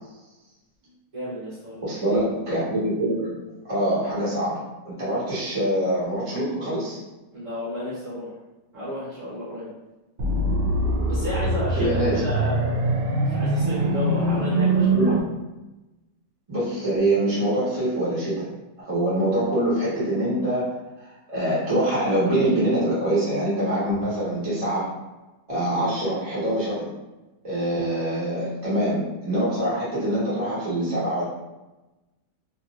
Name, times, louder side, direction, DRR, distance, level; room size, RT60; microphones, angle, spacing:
voice 1, 1.1-1.9 5.1-5.3 7.3-8.3 8.7-9.7 11.1-15.1, equal, 55° right, -10 dB, 1.2 m, -33 dB
voice 2, 1.8-3.3 3.6-7.0 11.7-12.2 14.9-15.1 16.5-18.5 18.8-24.9 25.5-26.9 27.4-31.2, right 1 dB, 20° right, -10 dB, 1.3 m, -24 dB
sound 1, 10.2-15.2, right 2 dB, 90° right, 1.2 m, -23 dB
3.0 x 2.8 x 2.4 m, 1.1 s
omnidirectional pair, 1.8 m